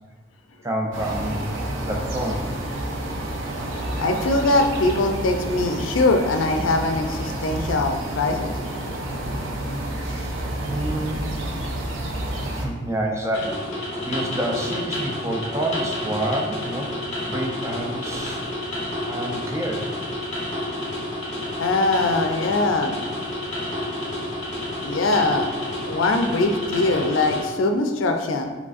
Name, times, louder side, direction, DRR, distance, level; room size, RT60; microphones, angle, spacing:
voice 1, 0.6-1.5 1.7-2.5 10.6-11.3 12.5-18.4 19.1-19.9, right 1 dB, 15° right, 0 dB, 0.4 m, -28 dB
sound 1, 0.9-12.7, right 1 dB, 80° right, 0.6 m, -29 dB
voice 2, 4.0-8.6 21.6-23.0 24.8-25.5 25.9-28.5, left 2 dB, 85° left, 5 dB, 0.4 m, -22 dB
sound 2, 13.3-27.4, left 1 dB, 35° left, 1.1 m, -30 dB
5.0 x 3.2 x 2.4 m, 1.3 s
head